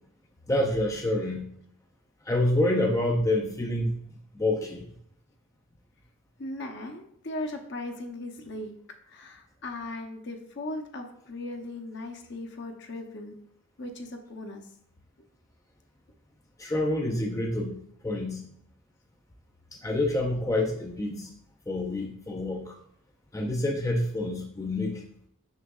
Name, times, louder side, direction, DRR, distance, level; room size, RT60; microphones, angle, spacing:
voice 1, 0.5-1.5 2.3-4.0 4.3-4.9 16.6-18.4 19.7-21.3 21.7-22.7 23.3-25.0, left 1 dB, 15° left, 0 dB, 0.4 m, -27 dB
voice 2, 6.4-8.7 9.1-13.4 13.8-14.7, left 2 dB, 50° left, 4 dB, 0.7 m, -38 dB
6.4 x 6.2 x 2.4 m, 0.72 s
head